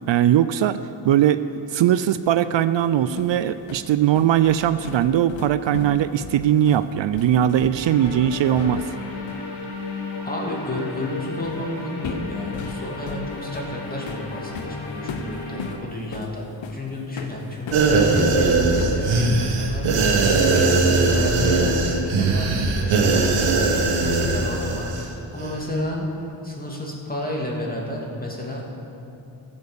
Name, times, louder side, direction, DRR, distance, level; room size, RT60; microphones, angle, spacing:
voice 1, 0.1-8.9, right 10 dB, 70° right, 13 dB, 0.5 m, -20 dB
sound 1, 2.8-9.0 9.3-9.5 11.4-11.7 12.0-18.4 18.8-19.7, left 5 dB, 70° left, 1.0 m, -37 dB
sound 2, 7.7-15.7, left 3 dB, 90° left, 2.5 m, -34 dB
voice 2, 10.2-19.8 20.2-26.1 26.4-28.6, left 1 dB, 20° left, -2 dB, 2.6 m, -31 dB
sound 3, 17.7-25.1 25.4-25.5, right 3 dB, 85° right, 1.6 m, -20 dB
14.5 x 7.1 x 6.8 m, 2.8 s
cardioid pair, 75°, 47 cm